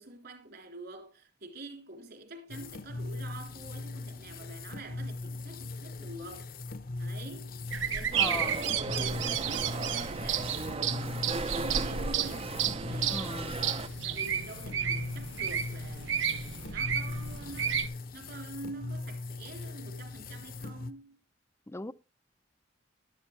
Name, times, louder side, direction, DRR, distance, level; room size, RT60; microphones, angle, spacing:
voice 1, 0.0-6.5 7.0-7.6 7.9-10.5 10.9-21.2, right 2 dB, 60° right, 3.5 m, -46 dB
sound 1, 2.5-20.9, left 2 dB, 50° left, 0.9 m, -40 dB
sound 2, 7.7-17.9, right 8 dB, 85° right, 0.9 m, -32 dB
voice 2, 8.1-8.6 13.1-13.5 21.7-21.9, left 2 dB, 15° left, 0.5 m, -37 dB
sound 3, 8.1-13.9, right 3 dB, 30° right, 0.6 m, -37 dB
12.5 x 12.5 x 3.3 m
head